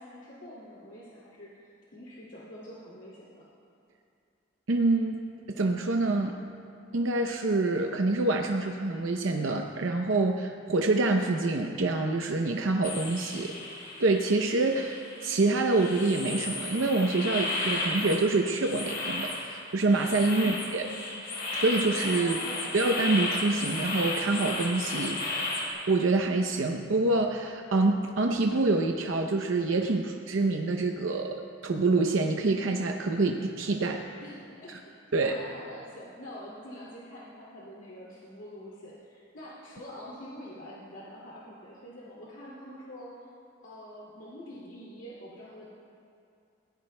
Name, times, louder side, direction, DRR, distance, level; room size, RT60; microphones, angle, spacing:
voice 1, 0.0-3.5 20.3-20.6 22.2-22.7 34.2-34.9 35.2-43.3 43.6-45.7, equal, 85° left, -7 dB, 2.4 m, -46 dB
voice 2, 4.7-6.4 6.9-13.5 14.0-20.9 21.5-22.4 22.7-25.5 25.9-34.0 35.1-35.3, right 2 dB, 85° right, 3 dB, 0.7 m, -26 dB
sound 1, 12.8-25.7, left 2 dB, 50° left, 2.9 m, -34 dB
22.0 x 17.5 x 2.2 m, 2.5 s
head